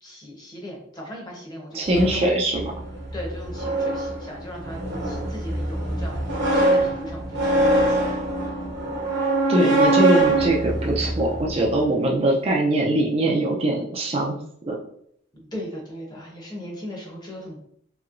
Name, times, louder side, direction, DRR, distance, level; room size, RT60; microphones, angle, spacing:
voice 1, 0.0-1.8 2.0-2.3 3.1-6.2 6.5-8.5 8.8-8.9 15.3-17.6, equal, 20° left, -1 dB, 0.8 m, -38 dB
voice 2, 1.7-2.7 9.5-14.4 14.7-14.8, right 1 dB, 30° right, -1 dB, 0.4 m, -22 dB
sound 1, 1.9-11.8, right 1 dB, 70° right, 1.0 m, -23 dB
3.0 x 2.9 x 2.4 m, 0.68 s
head